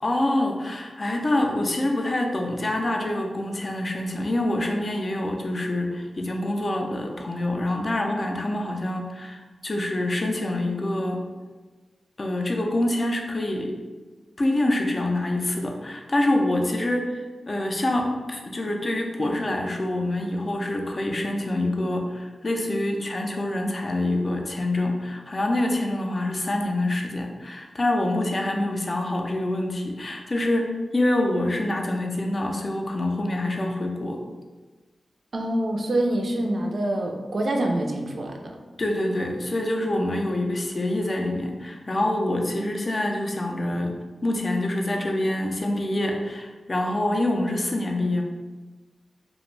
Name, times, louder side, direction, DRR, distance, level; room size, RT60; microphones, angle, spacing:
voice 1, 0.0-11.2 12.2-13.7 14.4-34.2 38.8-44.0 44.2-48.2, left 1 dB, 35° left, 2 dB, 0.4 m, -26 dB
voice 2, 35.3-38.6 42.5-42.8, right 1 dB, 60° right, 2 dB, 0.3 m, -26 dB
2.4 x 2.1 x 3.1 m, 1.3 s
wide cardioid pair, 95°, 0 cm